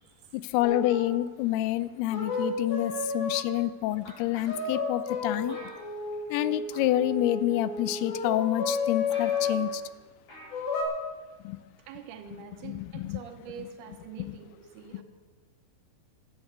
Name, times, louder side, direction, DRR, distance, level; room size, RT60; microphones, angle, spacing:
voice 1, 0.3-5.6 6.3-9.8 11.5-11.6 12.6-13.2, left 15 dB, 85° left, 15 dB, 2.6 m, -28 dB
sound 1, 0.6-1.2 2.1-3.7 4.5-9.7 10.5-10.8, left 4 dB, 70° left, 4.0 m, -32 dB
sound 2, 4.0-4.7 5.5-6.4 6.7-7.0 7.9-8.0 8.5-8.6 8.8-8.9 9.1-9.8 10.3-10.6 10.9-11.0, equal, 50° left, 5.4 m, -47 dB
voice 2, 11.9-15.0, right 7 dB, 80° right, 5 dB, 3.0 m, -45 dB
13.0 x 9.1 x 8.1 m, 1.4 s
omnidirectional pair, 4.5 m